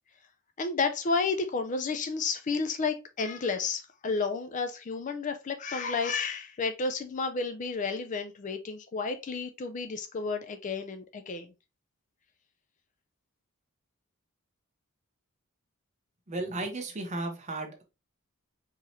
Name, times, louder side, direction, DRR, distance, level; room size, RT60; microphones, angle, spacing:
voice 1, 0.6-11.5, left 4 dB, 35° left, 0.4 m, -31 dB
voice 2, 16.3-17.8, right 2 dB, 35° right, 0.9 m, -34 dB
4.7 x 3.1 x 2.6 m
head